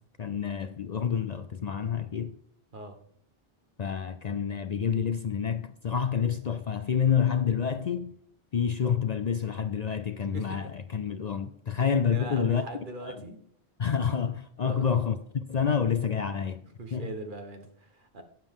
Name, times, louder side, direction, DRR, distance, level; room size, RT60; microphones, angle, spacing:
voice 1, 0.2-2.3 3.8-8.1 8.5-12.6 13.1-13.2 13.8-16.6 16.9-17.1, left 7 dB, 50° left, 0.6 m, -28 dB
voice 2, 10.3-10.7 11.7-11.8 12.1-13.4 14.6-15.0 16.8-18.2, right 2 dB, 55° right, 1.5 m, -40 dB
12.5 x 9.0 x 3.7 m
omnidirectional pair, 1.0 m